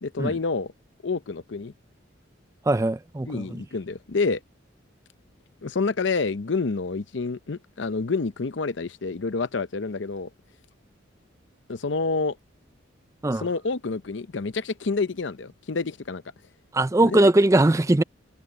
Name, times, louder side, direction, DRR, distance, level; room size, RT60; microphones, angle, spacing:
voice 1, 0.0-0.7 1.0-1.7 3.3-4.4 5.6-10.3 11.7-12.4 13.4-16.2 17.0-17.2, left 4 dB, 65° left, 0.7 m, -28 dB
voice 2, 2.7-3.6 13.2-13.5 16.7-18.0, right 2 dB, 15° right, 0.4 m, -20 dB
head